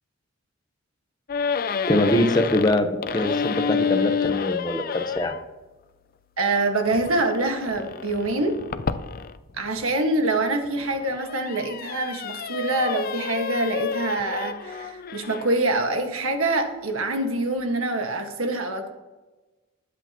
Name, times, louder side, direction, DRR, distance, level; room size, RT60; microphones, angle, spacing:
sound 1, 1.3-5.4 6.8-10.0 10.6-15.6, left 6 dB, 45° left, 0.5 m, -30 dB
voice 1, 1.9-5.3, left 1 dB, 20° left, 7 dB, 0.9 m, -23 dB
voice 2, 6.4-8.6 9.6-18.9, right 2 dB, 80° right, 4 dB, 1.7 m, -25 dB
21.0 x 8.3 x 3.0 m, 1.2 s
head